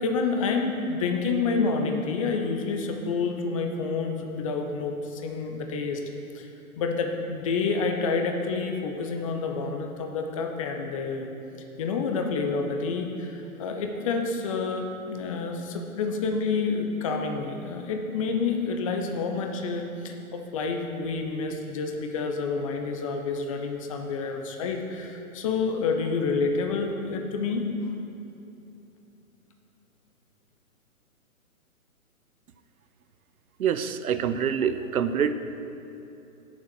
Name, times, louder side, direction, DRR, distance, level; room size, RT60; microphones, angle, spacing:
voice 1, 0.0-6.0 6.3-6.5 6.8-11.3 11.8-27.7, left 4 dB, 25° left, 4 dB, 0.6 m, -28 dB
voice 2, 33.6-35.3, right 7 dB, 75° right, 11 dB, 0.7 m, -25 dB
8.5 x 6.8 x 6.1 m, 2.9 s
hypercardioid pair, 135°, 44 cm